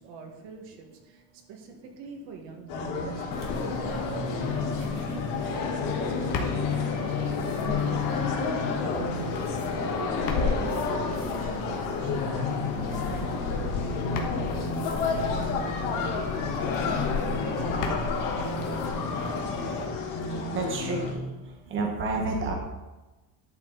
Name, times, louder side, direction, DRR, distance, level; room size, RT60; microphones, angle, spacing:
voice 1, 0.0-8.8 9.8-19.8, right 5 dB, 70° right, 2 dB, 1.8 m, -45 dB
sound 1, 2.7-21.1, left 4 dB, 80° left, 2.5 m, -31 dB
sound 2, 3.3-19.9, left 4 dB, 45° left, 1.4 m, -32 dB
voice 2, 20.3-21.3 21.7-22.5, right 3 dB, 25° right, 1 dB, 1.4 m, -30 dB
11.0 x 6.4 x 4.0 m, 1.1 s
cardioid pair, 170°, 45 cm